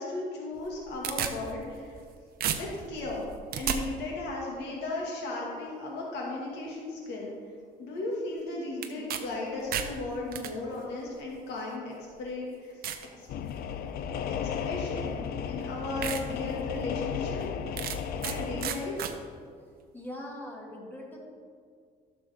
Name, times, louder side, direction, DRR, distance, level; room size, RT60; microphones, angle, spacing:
voice 1, 0.0-2.0 2.5-3.3 3.5-7.3 7.8-12.7 14.6-15.2 15.5-17.4 18.2-18.9, left 2 dB, 85° left, -2 dB, 2.0 m, -35 dB
sound 1, 0.6-2.1 2.4-3.8 8.8-9.2 9.5-10.5 11.4-11.5 12.1-12.2 12.8-13.1 13.6-13.9 15.1-15.2 15.6-15.7 16.0-16.2 16.7-16.8 17.8-18.4 18.6-19.1, right 9 dB, 60° right, 0.8 m, -33 dB
sound 2, 13.3-18.7, left 7 dB, 65° left, 0.5 m, -34 dB
voice 2, 19.9-21.2, left 1 dB, 10° left, -2 dB, 2.1 m, -41 dB
11.5 x 6.8 x 3.5 m, 2.1 s
cardioid pair, 110°, 17 cm